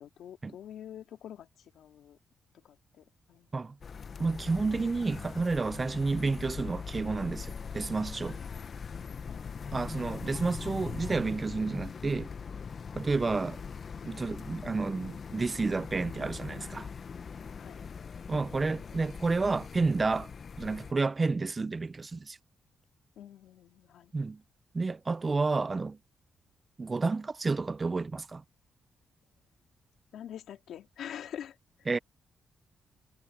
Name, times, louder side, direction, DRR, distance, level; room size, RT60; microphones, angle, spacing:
voice 1, 0.0-2.2 2.5-3.5 9.3-9.8 17.6-17.9 23.2-24.1 30.1-31.9, left 10 dB, 85° left, 2.5 m, -46 dB
sound 1, 3.8-20.9, left 6 dB, 50° left, 1.0 m, -41 dB
voice 2, 4.2-8.4 9.7-12.3 13.0-13.6 14.1-16.9 18.3-20.3 20.6-22.4 24.1-24.4 24.7-26.0 26.8-28.4 31.9-32.0, right 3 dB, 30° right, 0.4 m, -30 dB
cardioid pair, 95°, 0 cm